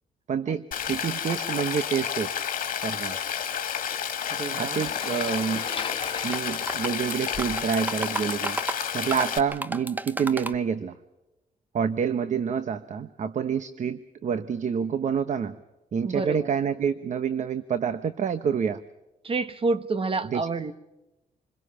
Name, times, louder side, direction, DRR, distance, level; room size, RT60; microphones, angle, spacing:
voice 1, 0.3-2.3 2.8-3.2 4.6-5.7 6.2-8.6 8.9-11.0 11.7-15.6 15.9-18.8 20.3-20.4, right 7 dB, 50° right, 12 dB, 0.9 m, -28 dB
Rain, 0.7-9.4, left 8 dB, 65° left, 2.4 m, -31 dB
voice 2, 4.3-4.9 16.0-16.5 19.2-20.7, right 3 dB, 35° right, 12 dB, 1.4 m, -29 dB
sound 1, 4.6-7.7, left 5 dB, 35° left, 1.1 m, -38 dB
sound 2, 5.8-6.1 6.3-10.6, right 2 dB, 10° right, 0.9 m, -33 dB
27.5 x 22.0 x 5.6 m, 0.99 s
cardioid pair, 120°, 15 cm